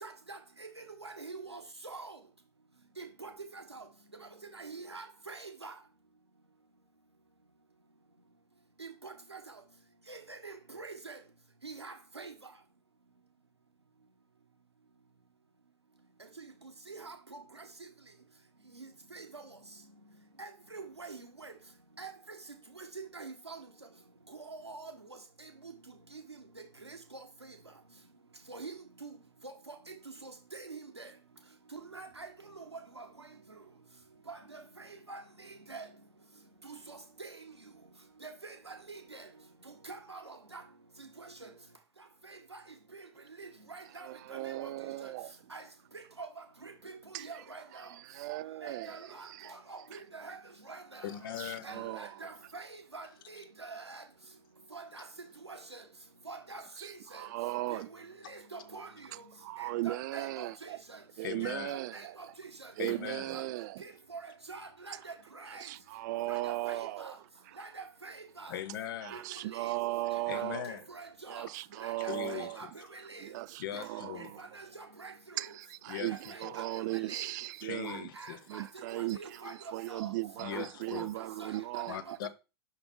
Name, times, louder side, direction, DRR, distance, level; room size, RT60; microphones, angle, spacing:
voice 1, 0.0-2.2 3.0-3.8 4.2-5.7 8.8-9.4 10.1-11.2 11.6-12.3 16.4-16.5 16.9-17.4 18.8-19.5 20.4-21.5 22.0-22.1 22.8-23.7 24.3-24.9 25.4-25.5 26.1-26.2 26.8-27.5 28.5-28.7 29.0-29.1 29.4-29.9 30.2-31.1 31.7-33.1 34.3-35.8 36.6-37.4 38.2-39.3 39.8-40.6 41.0-41.5 42.5-42.6 42.9-43.1 43.4-44.5 45.0-45.1 45.5-45.6 45.9-46.3 46.6-47.9 48.6-50.4 50.7-51.1 51.6-54.0 54.7-55.0 55.4-55.8 56.3-57.3 57.7-59.3 59.6-61.0 61.4-62.7 63.3-63.4 63.8-65.7 66.3-67.2 67.6-68.6 69.1-69.2 69.5-69.7 70.3-70.5 70.9-71.5 71.8-73.3 73.7-73.8 74.4-75.5 75.9-76.6 76.9-77.3 77.8-79.5 79.9-80.1 80.5-81.0 81.4-82.0, right 3 dB, 85° right, 1.4 m, -46 dB
voice 2, 44.0-45.4 47.1-47.4 47.7-49.5 49.9-50.0 51.4-52.2 56.8-57.9 59.4-60.8 61.2-62.2 62.8-63.8 65.5-67.1 67.5-67.6 69.0-70.7 71.3-72.8 73.2-74.5 75.4-78.1 78.5-82.2, right 18 dB, 45° right, 0.4 m, -37 dB
voice 3, 51.0-51.8 61.2-61.7 62.8-63.3 68.5-69.2 70.3-70.8 72.0-72.7 73.6-74.3 75.9-76.1 76.4-76.5 77.6-78.4 80.4-81.1 81.9-82.3, left 10 dB, 55° left, 0.8 m, -40 dB
5.8 x 5.5 x 3.7 m
figure-of-eight pair, 95°, 14 cm